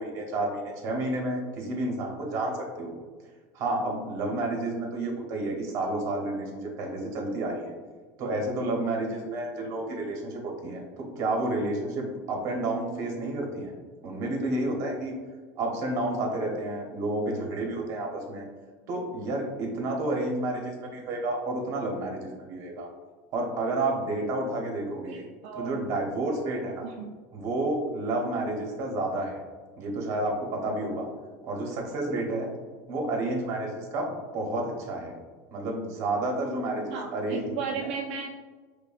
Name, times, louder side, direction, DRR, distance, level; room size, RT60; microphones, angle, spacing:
voice 1, 0.0-2.9 3.5-7.7 8.2-13.7 14.0-15.1 15.6-18.5 18.9-22.9 23.3-25.2 25.5-26.9 27.3-29.4 29.8-31.1 31.4-32.5 32.9-35.1 35.5-37.9, right 2 dB, 50° right, 1 dB, 0.8 m, -30 dB
voice 2, 25.1-25.8 26.8-27.1 36.9-38.3, right 6 dB, 75° right, 1 dB, 0.3 m, -35 dB
5.3 x 2.2 x 2.4 m, 1.4 s
supercardioid pair, 135°, 7 cm